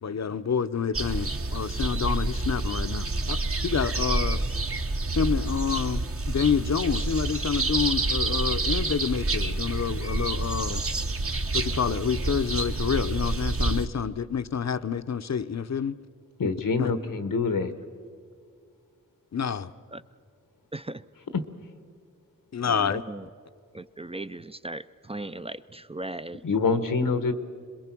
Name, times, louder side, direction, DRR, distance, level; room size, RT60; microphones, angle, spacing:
voice 1, 0.0-3.4 3.6-4.4 5.2-10.8 11.5-16.0 16.8-16.9 19.3-19.7 22.5-23.0, left 6 dB, 55° left, 0.8 m, -28 dB
sound 1, 0.9-13.9, right 2 dB, 45° right, 1.2 m, -28 dB
voice 2, 16.4-17.7 21.3-21.4 26.4-27.3, left 4 dB, 90° left, 1.3 m, -25 dB
voice 3, 20.7-21.0 22.7-23.3 23.7-26.4, right 2 dB, 20° right, 0.5 m, -37 dB
27.0 x 21.5 x 6.1 m
wide cardioid pair, 60°, 33 cm